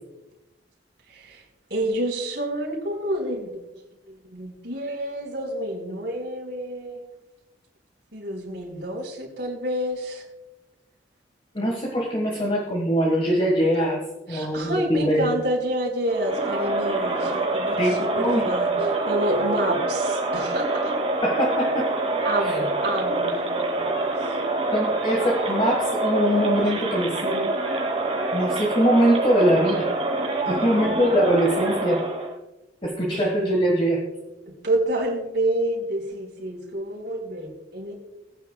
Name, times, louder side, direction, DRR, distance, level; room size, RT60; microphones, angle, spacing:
voice 1, 1.7-3.5 4.3-7.1 8.1-10.2 14.3-20.9 22.2-24.1 30.4-30.9 33.1-33.2 34.5-38.0, right 1 dB, 60° right, -1 dB, 4.2 m, -28 dB
voice 2, 11.5-14.0 14.3-15.3 17.8-18.5 18.8-18.9 21.2-21.9 22.4-22.6 24.7-27.5 28.3-29.9 30.5-32.0 32.8-34.0, equal, 30° left, -1 dB, 1.6 m, -22 dB
Crowd, 16.1-32.4, right 2 dB, 35° right, 2.6 m, -26 dB
20.0 x 9.6 x 2.3 m, 0.99 s
head